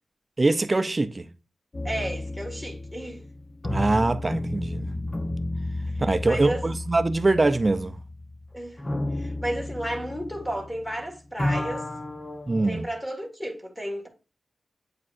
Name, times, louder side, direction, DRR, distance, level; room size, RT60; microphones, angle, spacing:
voice 1, 0.4-1.3 3.7-4.9 6.0-8.0 12.5-12.9, right 2 dB, 30° right, 0.5 m, -23 dB
sound 1, 1.7-11.0 11.2-12.8, left 1 dB, 30° left, 0.8 m, -32 dB
voice 2, 1.8-3.2 5.9-6.6 8.5-8.8 9.1-11.9 12.6-14.1, right 1 dB, 10° left, 1.6 m, -33 dB
8.5 x 4.7 x 2.5 m
wide cardioid pair, 95°, 0 cm